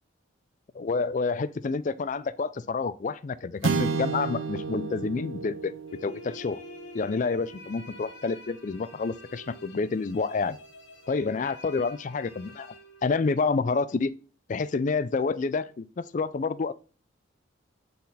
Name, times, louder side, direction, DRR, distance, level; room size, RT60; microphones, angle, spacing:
voice 1, 0.7-5.7 6.0-6.6 6.9-10.6 11.1-12.7 13.0-14.1 14.5-16.7, left 4 dB, 40° left, 0.4 m, -28 dB
sound 1, 3.6-8.1, right 4 dB, 85° right, 0.6 m, -32 dB
sound 2, 5.9-13.6, left 2 dB, 70° left, 1.3 m, -49 dB
8.4 x 4.0 x 4.1 m
head